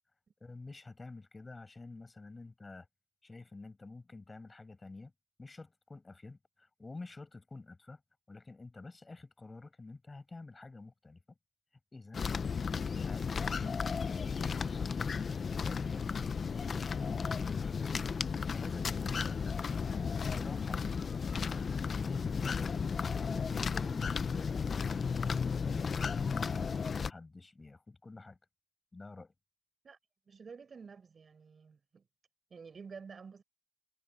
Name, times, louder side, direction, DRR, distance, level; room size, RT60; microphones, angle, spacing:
voice 1, 0.4-2.9 3.2-5.1 5.4-8.0 8.3-11.2 11.9-12.3 12.9-14.3 14.5-15.2 15.5-16.4 16.7-18.0 18.5-19.6 20.3-25.0 25.6-28.4 28.9-29.3, left 3 dB, 40° left, 7.3 m, -49 dB
sound 1, 12.1-27.1, left 5 dB, 85° left, 0.5 m, -34 dB
voice 2, 30.3-32.0 32.5-33.4, right 5 dB, 80° right, 6.3 m, -50 dB
wide cardioid pair, 100°, 0 cm